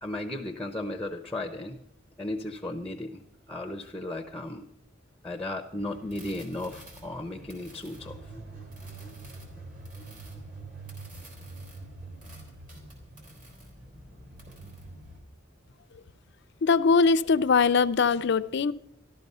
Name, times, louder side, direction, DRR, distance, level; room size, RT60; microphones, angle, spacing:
voice 1, 0.0-1.8 2.2-3.2 3.5-4.7 5.2-8.2, left 1 dB, 5° left, 5 dB, 0.7 m, -35 dB
sound 1, 5.8-15.2, right 2 dB, 45° right, 3.7 m, -45 dB
voice 2, 16.6-18.7, left 5 dB, 60° left, 13 dB, 0.5 m, -22 dB
14.0 x 12.0 x 5.4 m, 0.73 s
head